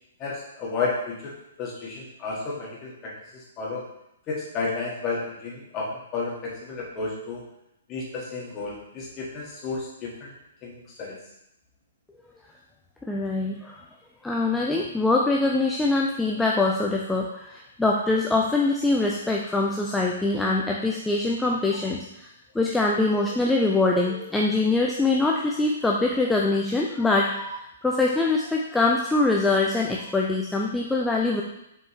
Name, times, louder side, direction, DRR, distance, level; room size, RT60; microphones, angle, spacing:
voice 1, 0.2-1.3 1.6-3.1 3.6-3.8 4.3-7.4 7.9-10.3 10.6-11.1, left 4 dB, 25° left, -4 dB, 1.8 m, -32 dB
voice 2, 13.1-13.8 14.2-22.3 22.5-31.4, left 2 dB, 5° left, -2 dB, 0.5 m, -23 dB
6.8 x 4.4 x 3.2 m, 0.84 s
figure-of-eight pair, 120°, 0 cm